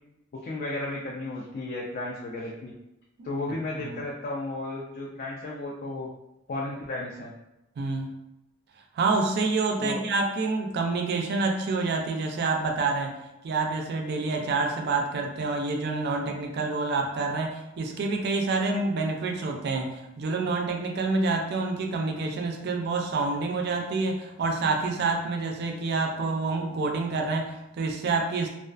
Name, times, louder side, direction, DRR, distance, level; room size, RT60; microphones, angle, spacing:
voice 1, 0.3-2.7 3.2-6.1 6.5-7.3 9.8-10.0, left 2 dB, 45° left, -3 dB, 0.3 m, -34 dB
voice 2, 7.8-8.2 8.9-13.2 13.4-28.5, right 3 dB, 55° right, 2 dB, 0.4 m, -27 dB
2.3 x 2.3 x 2.4 m, 0.89 s
head